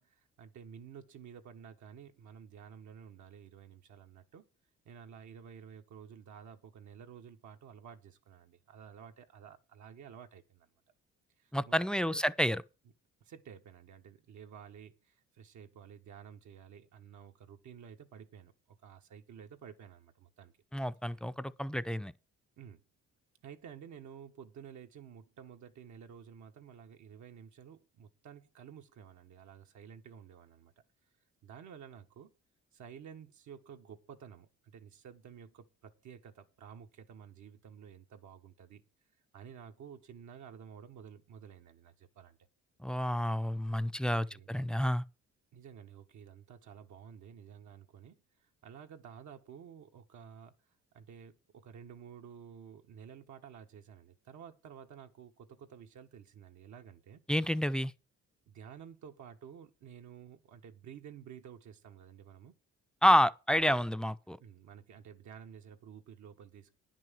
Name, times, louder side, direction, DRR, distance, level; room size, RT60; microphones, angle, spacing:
voice 1, 0.0-4.5 4.8-10.7 11.4-12.2 13.2-20.5 22.6-22.8 23.4-30.7 31.4-32.3 32.7-38.8 39.3-42.4 44.1-44.5 45.5-50.5 50.9-57.2 58.5-62.6 64.4-66.7, right 8 dB, 75° right, 1.6 m, -52 dB
voice 2, 11.5-12.6 20.7-22.1 42.8-45.0 57.3-57.9 63.0-64.4, equal, 5° left, 0.5 m, -29 dB
10.5 x 6.1 x 7.5 m
cardioid pair, 90°, 30 cm